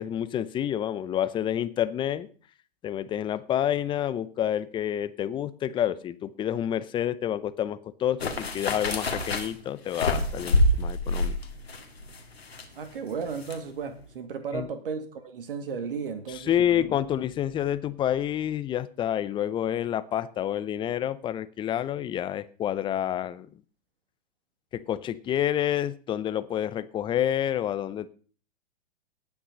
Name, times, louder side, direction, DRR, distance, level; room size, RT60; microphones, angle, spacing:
voice 1, 0.0-2.3 2.8-11.3 14.5-14.7 16.3-23.5 24.7-28.1, left 10 dB, 15° left, 15 dB, 0.7 m, -28 dB
sound 1, 8.2-13.6 13.9-14.0, left 1 dB, 90° left, 2.1 m, -27 dB
voice 2, 12.8-16.9, right 6 dB, 65° right, 7 dB, 2.0 m, -34 dB
18.5 x 6.1 x 5.3 m, 0.40 s
hypercardioid pair, 115°, 30 cm